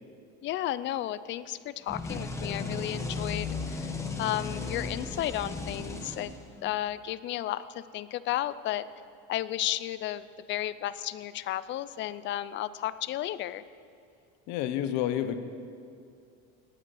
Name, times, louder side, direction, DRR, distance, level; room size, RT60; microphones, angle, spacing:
voice 1, 0.4-3.9 4.2-6.3 6.6-8.9 9.3-13.6, left 13 dB, 40° left, 16 dB, 0.5 m, -33 dB
sound 1, 1.9-6.8, left 3 dB, 10° left, 1.1 m, -35 dB
voice 2, 14.5-15.4, left 11 dB, 70° left, 10 dB, 1.1 m, -29 dB
18.0 x 9.3 x 6.3 m, 2.4 s
cardioid pair, 150°, 29 cm